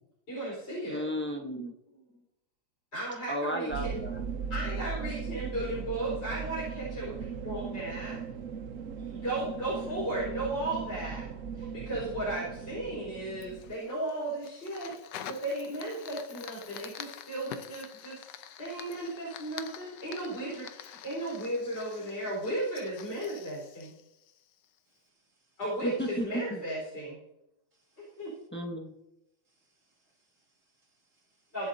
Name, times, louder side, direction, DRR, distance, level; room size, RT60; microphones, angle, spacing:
voice 1, 0.3-1.0 1.9-2.2 2.9-4.0 4.5-7.1 7.4-8.2 9.0-11.3 11.5-14.9 15.2-18.2 18.6-23.9 25.6-27.2 28.0-28.3 31.5-31.7, right 1 dB, 30° left, -7 dB, 4.6 m, -35 dB
voice 2, 0.9-1.7 3.3-4.2 25.8-26.6 28.5-28.9, equal, 15° left, 2 dB, 0.5 m, -34 dB
sound 1, 3.7-13.8, right 6 dB, 75° right, 0.7 m, -38 dB
Fire, 13.4-24.8, left 10 dB, 70° left, 1.2 m, -47 dB
voice 3, 24.8-25.6 27.7-28.5 29.4-31.7, right 3 dB, 40° right, -3 dB, 3.1 m, -67 dB
22.5 x 7.8 x 2.8 m, 0.90 s
omnidirectional pair, 2.2 m